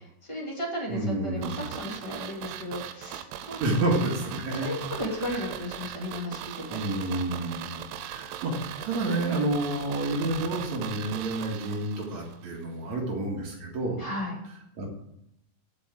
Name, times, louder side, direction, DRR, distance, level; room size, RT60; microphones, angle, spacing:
voice 1, 0.3-3.6 4.6-6.8 7.0-7.8 14.0-14.3, left 1 dB, 25° left, -4 dB, 0.7 m, -35 dB
voice 2, 0.9-1.8 3.6-4.7 5.1-5.6 6.7-14.0 14.5-14.9, right 2 dB, 55° right, -1 dB, 2.2 m, -30 dB
sound 1, 1.4-12.4 12.6-12.7, right 11 dB, 85° right, 3.1 m, -39 dB
9.0 x 7.3 x 7.5 m, 0.77 s
omnidirectional pair, 5.7 m